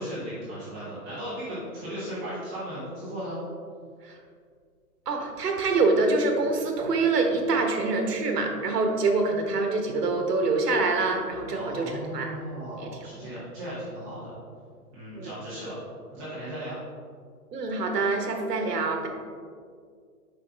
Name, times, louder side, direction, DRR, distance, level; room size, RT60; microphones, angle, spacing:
voice 1, 0.0-3.4 11.5-14.3 14.9-15.8 16.1-16.8, equal, 10° right, -12 dB, 0.9 m, -36 dB
voice 2, 5.1-12.3 12.8-12.9 15.1-15.3 17.5-19.1, right 3 dB, 80° right, 3 dB, 1.4 m, -25 dB
7.6 x 5.5 x 3.5 m, 2.1 s
hypercardioid pair, 175°, 47 cm